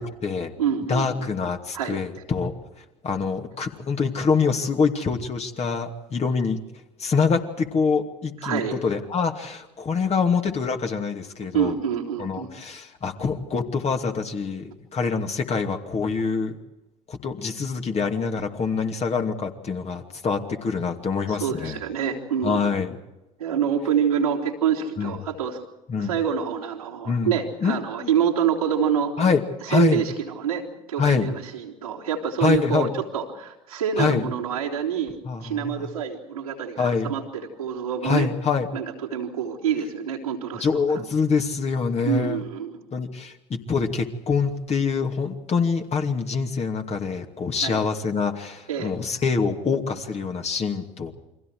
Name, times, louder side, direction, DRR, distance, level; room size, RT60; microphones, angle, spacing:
voice 1, 0.0-0.5 0.9-2.5 3.0-6.6 7.0-11.7 12.2-16.5 17.1-21.8 22.4-23.0 25.0-25.1 25.9-26.1 27.1-27.4 27.6-28.1 29.2-29.4 29.7-30.0 31.0-31.3 32.4-32.9 34.0-34.2 35.2-35.9 36.8-37.1 38.0-38.7 40.5-42.4 42.9-51.1, left 5 dB, 35° left, 4 dB, 2.6 m, -25 dB
voice 2, 0.6-1.2 1.7-2.2 8.4-8.7 11.5-12.5 21.3-22.7 23.4-25.6 26.0-29.1 29.6-38.3 38.7-40.8 42.0-42.8 47.6-47.8 48.7-48.9, right 8 dB, 85° right, -4 dB, 3.6 m, -26 dB
29.5 x 23.5 x 4.8 m, 0.98 s
hypercardioid pair, 65°, 18 cm